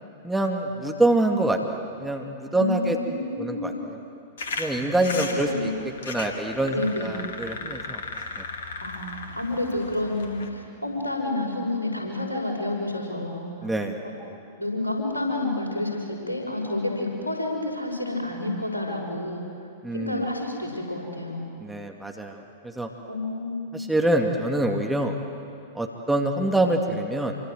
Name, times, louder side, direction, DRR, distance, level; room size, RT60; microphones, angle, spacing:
voice 1, 0.2-1.6 2.0-3.0 3.4-4.0 4.6-5.5 6.1-8.0 13.6-13.9 19.8-20.2 21.6-22.4 22.8-22.9 23.7-25.1 25.7-27.4, right 1 dB, 5° right, 2 dB, 2.3 m, -25 dB
voice 2, 2.5-3.7 5.3-5.8 6.7-7.2 8.8-13.5 14.6-19.4 19.9-21.5 23.1-23.9, left 2 dB, 80° left, 0 dB, 5.8 m, -29 dB
sound 1, 4.4-10.5, left 3 dB, 60° left, 2.8 m, -36 dB
27.0 x 24.5 x 8.0 m, 2.5 s
figure-of-eight pair, 100°, 0 cm